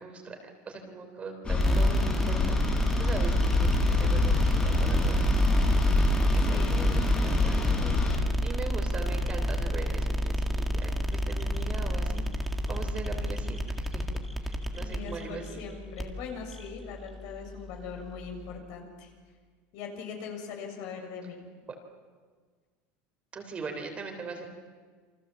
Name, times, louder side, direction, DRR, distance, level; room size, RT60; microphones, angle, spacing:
voice 1, 0.0-2.6 3.0-5.3 6.3-12.3 12.7-15.6 21.7-21.8 23.3-24.5, right 4 dB, 20° right, 4 dB, 3.4 m, -40 dB
sound 1, 1.4-8.2, left 2 dB, 20° left, 5.5 m, -27 dB
sound 2, 1.6-18.6, equal, ahead, 2.0 m, -29 dB
voice 2, 6.0-6.9 14.8-19.1 19.7-21.4, left 6 dB, 60° left, 3 dB, 7.1 m, -41 dB
29.0 x 25.0 x 7.5 m, 1.5 s
cardioid pair, 160°, 6 cm